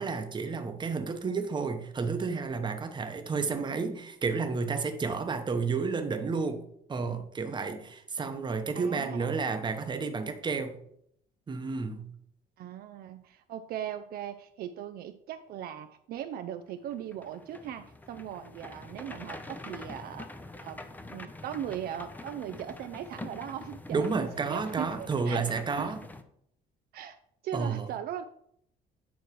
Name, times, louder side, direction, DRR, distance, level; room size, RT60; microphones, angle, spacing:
voice 1, 0.0-6.6 6.9-10.8 11.5-12.1 23.9-26.0 27.5-27.9, right 4 dB, 25° right, 6 dB, 0.9 m, -31 dB
voice 2, 8.8-9.4 12.6-20.3 20.6-20.8 21.1-24.9 25.3-25.4 25.8-26.0 26.9-27.2 27.4-28.2, right 10 dB, 65° right, 9 dB, 0.5 m, -39 dB
sound 1, 16.9-26.2, left 2 dB, 10° left, 0.6 m, -45 dB
9.0 x 3.1 x 4.6 m, 0.70 s
cardioid pair, 110°, 17 cm